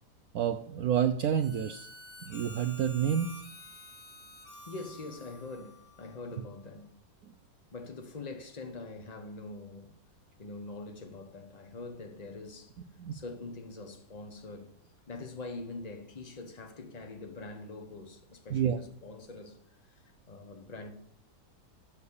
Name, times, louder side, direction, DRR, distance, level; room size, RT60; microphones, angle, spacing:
voice 1, 0.3-1.9 2.2-3.3 13.0-13.2 18.5-18.8, right 9 dB, 85° right, 0.8 m, -29 dB
Harmonica, 1.4-6.6, left 1 dB, 90° left, 4.2 m, -50 dB
voice 2, 4.7-6.9 7.7-9.9 10.4-12.8 13.1-14.7 15.1-20.9, left 3 dB, 30° left, 0.8 m, -44 dB
7.3 x 6.6 x 7.1 m
omnidirectional pair, 2.2 m